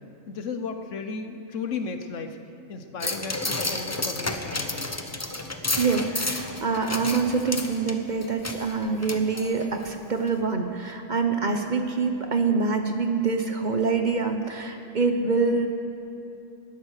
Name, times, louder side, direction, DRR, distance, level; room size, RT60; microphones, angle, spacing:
voice 1, 0.3-2.4 2.7-5.0, left 4 dB, 75° left, 7 dB, 1.3 m, -34 dB
sound 1, 3.0-9.9 10.3-10.4, left 2 dB, 15° left, 0.7 m, -31 dB
voice 2, 5.8-15.7, right 4 dB, 40° right, 5 dB, 1.0 m, -25 dB
18.5 x 11.5 x 6.5 m, 2.6 s
omnidirectional pair, 1.3 m